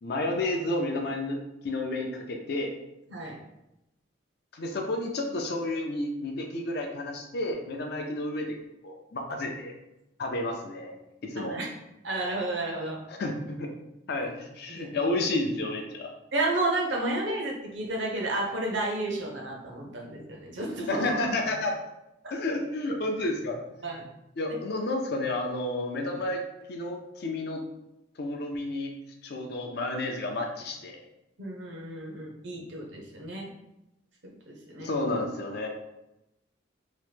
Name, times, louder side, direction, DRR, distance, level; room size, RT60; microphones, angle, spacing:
voice 1, 0.0-2.7 4.5-8.6 8.8-9.7 10.2-11.0 11.2-11.6 13.1-13.7 14.1-16.1 20.9-21.7 22.3-23.6 24.4-26.4 26.7-27.6 28.2-28.9 29.2-31.0 34.8-35.7, left 2 dB, 50° left, 3 dB, 0.4 m, -31 dB
voice 2, 11.4-11.7 12.0-13.0 14.7-14.9 16.3-21.3 23.8-24.0 31.4-33.5 34.5-34.9, right 2 dB, 60° right, -1 dB, 0.7 m, -31 dB
2.9 x 2.1 x 3.3 m, 0.90 s
head